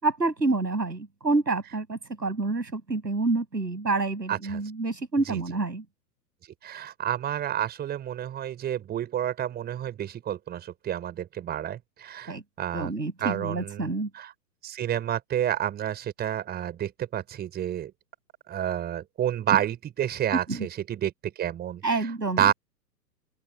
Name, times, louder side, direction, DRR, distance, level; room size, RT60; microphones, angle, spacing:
voice 1, 0.0-5.8 12.3-12.4 12.7-14.1 20.5-20.7 21.8-22.5, right 3 dB, 80° right, 6.0 m, -28 dB
voice 2, 4.3-4.6 5.3-5.4 6.6-12.9 13.2-13.9 14.1-14.3 14.6-17.9 18.5-22.5, right 11 dB, 20° right, 5.5 m, -30 dB
open air
figure-of-eight pair, 115°, 49 cm